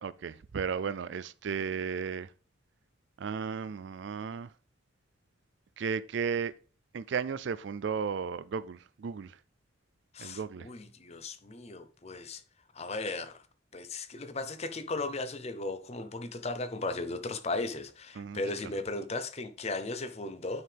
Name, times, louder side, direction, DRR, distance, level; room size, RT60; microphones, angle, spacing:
voice 1, 0.0-2.3 3.2-4.5 5.8-6.5 6.9-9.4 10.2-10.7 18.2-18.7, right 6 dB, 65° right, 0.4 m, -34 dB
voice 2, 10.1-12.4 12.7-13.4 13.7-20.6, left 2 dB, 35° left, 0.7 m, -36 dB
9.4 x 4.7 x 3.4 m
head